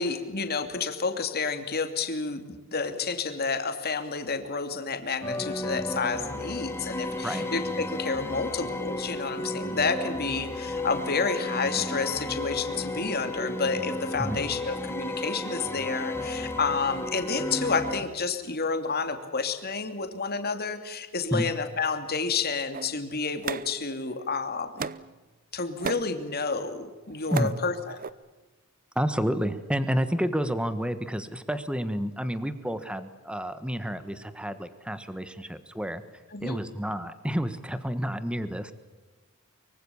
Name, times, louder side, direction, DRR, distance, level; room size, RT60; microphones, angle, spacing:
voice 1, 0.0-24.9 25.5-28.0 36.3-36.6, left 4 dB, 45° left, 7 dB, 2.8 m, -30 dB
sound 1, 5.2-18.0, left 1 dB, 10° left, 2.5 m, -33 dB
sound 2, 22.7-24.2 24.8-25.2 25.6-26.1 26.9-27.6 27.9-28.1, right 5 dB, 40° right, 0.8 m, -35 dB
voice 2, 28.9-36.0 36.4-38.7, equal, 5° right, 11 dB, 1.4 m, -30 dB
24.5 x 24.0 x 7.2 m, 1.2 s
head